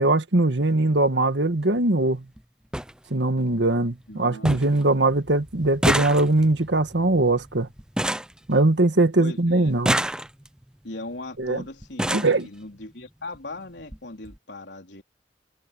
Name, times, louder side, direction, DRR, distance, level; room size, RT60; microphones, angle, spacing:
voice 1, 0.0-2.2 3.1-7.7 8.5-10.0 11.4-11.6 12.1-12.5, right 2 dB, 75° right, 1.6 m, -21 dB
sound 1, 0.6-0.8 2.0-2.1 2.4-2.5 2.7-2.9 3.4-3.9 4.1-4.2 4.4-4.8 5.1-9.1 9.7-10.6 11.4-11.5 11.8-12.4 13.3-13.4 13.8-14.0 14.2-14.4, right 1 dB, 5° right, 0.6 m, -28 dB
voice 2, 4.1-5.0 9.2-9.7 10.8-15.0, left 2 dB, 70° left, 4.1 m, -39 dB
head